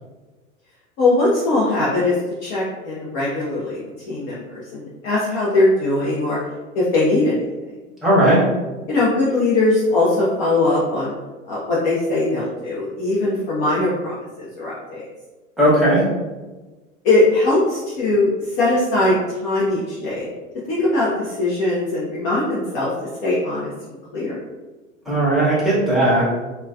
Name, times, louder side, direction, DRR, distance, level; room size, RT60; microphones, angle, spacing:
voice 1, 1.0-3.8 4.1-6.4 6.7-7.4 8.2-8.4 8.9-11.1 11.4-15.1 17.0-20.3 20.7-22.9 23.2-24.4, left 2 dB, 35° left, -6 dB, 0.5 m, -20 dB
voice 2, 8.0-8.4 15.6-16.0 25.1-26.2, right 1 dB, ahead, -8 dB, 0.9 m, -16 dB
3.2 x 2.1 x 2.2 m, 1.2 s
figure-of-eight pair, 90°, 39 cm